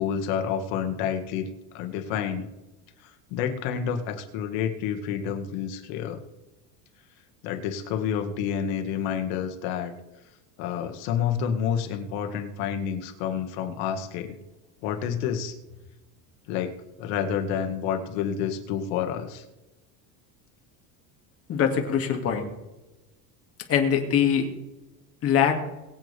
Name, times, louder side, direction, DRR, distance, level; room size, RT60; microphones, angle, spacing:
voice 1, 0.0-1.5 1.7-2.5 3.3-6.2 7.4-9.9 10.6-14.4 14.8-15.5 16.5-16.7 17.0-19.4, left 8 dB, 70° left, 6 dB, 1.8 m, -29 dB
voice 2, 21.5-22.5 23.7-24.5 25.2-25.6, left 8 dB, 35° left, 2 dB, 2.3 m, -22 dB
22.0 x 8.3 x 3.5 m, 1.0 s
cardioid pair, 160°, 42 cm